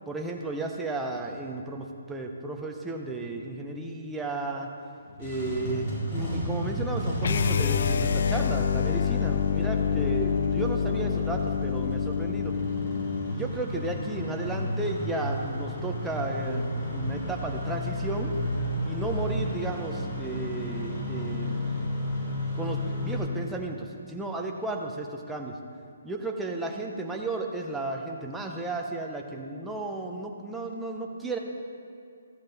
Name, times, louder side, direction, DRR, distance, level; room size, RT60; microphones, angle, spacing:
voice 1, 0.1-4.7 5.2-12.5 13.3-18.4 18.8-21.7 22.5-25.6 26.0-31.4, right 2 dB, 5° right, 0 dB, 0.6 m, -33 dB
Engine starting, 5.0-23.2, left 1 dB, 35° left, 2.5 m, -33 dB
sound 1, 7.2-13.4, left 7 dB, 50° left, 0.4 m, -27 dB
14.0 x 7.8 x 3.9 m, 2.4 s
hypercardioid pair, 165°, 0 cm